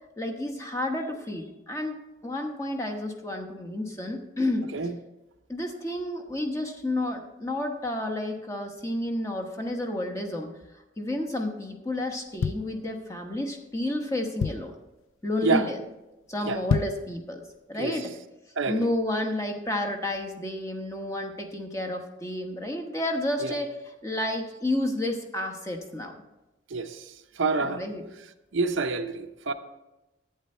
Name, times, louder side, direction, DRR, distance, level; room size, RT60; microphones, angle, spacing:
voice 1, 0.2-4.7 5.5-10.5 11.0-14.7 15.2-15.8 16.3-17.4 17.7-18.1 18.7-23.7 24.0-26.1 27.6-28.0, left 1 dB, 15° left, 1.0 m, -31 dB
sound 1, 12.1-13.4 13.9-14.0 14.1-14.9 15.4-15.6 15.9-16.0 16.5-17.1 17.6-17.7, left 6 dB, 80° left, 0.3 m, -29 dB
voice 2, 18.6-18.9 23.4-23.5 26.7-27.8 28.5-29.5, right 3 dB, 70° right, 0.7 m, -27 dB
11.5 x 8.7 x 4.3 m
head